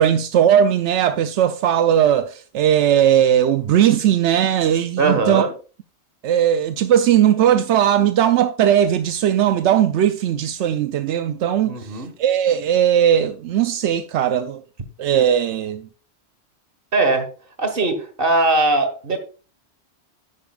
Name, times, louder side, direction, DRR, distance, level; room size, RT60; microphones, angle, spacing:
voice 1, 0.0-5.4 6.2-14.6 15.0-15.8, right 10 dB, 85° right, 0.9 m, -18 dB
voice 2, 5.0-5.5 11.6-12.1 16.9-17.3 17.6-19.2, right 2 dB, 55° right, 1.7 m, -20 dB
10.0 x 9.7 x 2.4 m
omnidirectional pair, 1.1 m